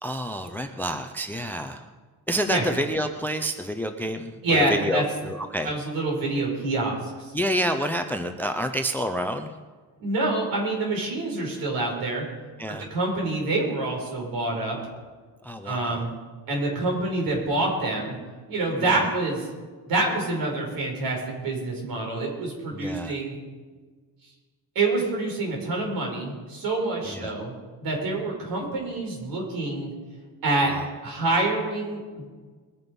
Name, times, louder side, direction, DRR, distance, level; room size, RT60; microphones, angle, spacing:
voice 1, 0.0-1.9 2.3-5.7 7.3-9.5 12.6-12.9 15.4-16.1 18.8-19.1 22.7-23.2 27.1-27.3 30.6-30.9, equal, 5° left, 7 dB, 0.5 m, -29 dB
voice 2, 4.4-5.0 5.6-7.3 10.0-12.2 12.9-14.8 15.6-16.1 16.5-18.2 18.5-19.5 19.9-23.3 24.8-27.5 27.8-29.9 30.4-30.7 31.0-32.2, right 2 dB, 60° right, -1 dB, 5.6 m, -26 dB
21.0 x 9.8 x 5.4 m, 1.4 s
cardioid pair, 170°, 39 cm